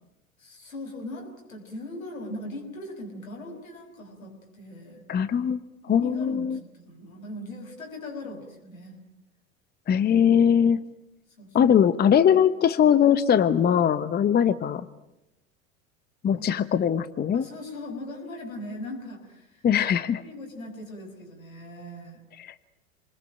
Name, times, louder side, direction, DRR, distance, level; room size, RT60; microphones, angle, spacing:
voice 1, 0.4-5.0 5.9-9.0 11.4-11.6 16.4-16.5 17.3-19.8 20.1-22.2, left 1 dB, 85° left, 3 dB, 6.3 m, -39 dB
voice 2, 5.1-6.6 9.9-10.8 11.5-14.9 16.2-17.5 19.6-20.2 22.4-22.5, left 8 dB, 25° left, 13 dB, 1.0 m, -21 dB
28.0 x 21.0 x 9.1 m, 0.91 s
figure-of-eight pair, 85°, 40 cm